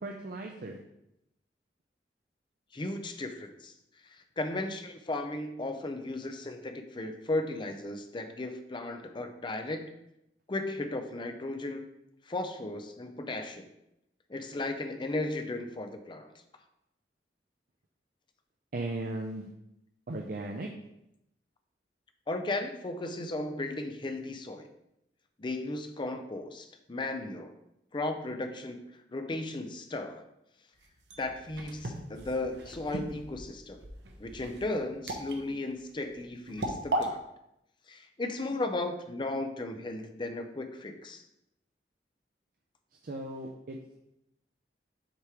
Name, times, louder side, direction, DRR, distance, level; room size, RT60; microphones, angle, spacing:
voice 1, 0.0-0.8 18.7-19.5 20.1-20.7 43.0-44.0, right 2 dB, 55° right, 1 dB, 0.5 m, -37 dB
voice 2, 2.7-3.7 4.1-9.9 10.5-11.8 12.3-13.7 14.3-16.3 22.3-24.7 25.4-27.6 27.9-28.8 29.1-30.3 31.2-33.9 34.2-37.3 37.9-41.2, left 2 dB, 25° left, 6 dB, 0.5 m, -35 dB
sound 1, 30.8-37.1, right 1 dB, 75° right, 0.9 m, -37 dB
6.6 x 3.0 x 4.8 m, 0.84 s
head